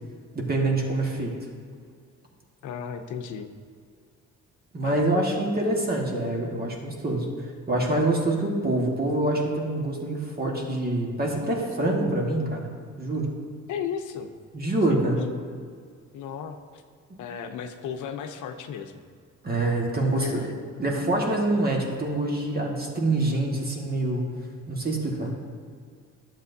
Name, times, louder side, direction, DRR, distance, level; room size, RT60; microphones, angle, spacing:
voice 1, 0.3-1.3 4.7-12.7 13.0-13.3 14.5-15.2 19.4-20.5 20.8-24.2 24.7-25.3, right 2 dB, 30° right, 0 dB, 1.5 m, -26 dB
voice 2, 2.6-3.5 4.8-5.0 13.7-14.3 15.2-15.3 16.1-16.8 17.2-19.0 20.2-20.5, left 7 dB, 75° left, 6 dB, 0.7 m, -35 dB
11.5 x 7.5 x 2.7 m, 2.1 s
cardioid pair, 90°, 30 cm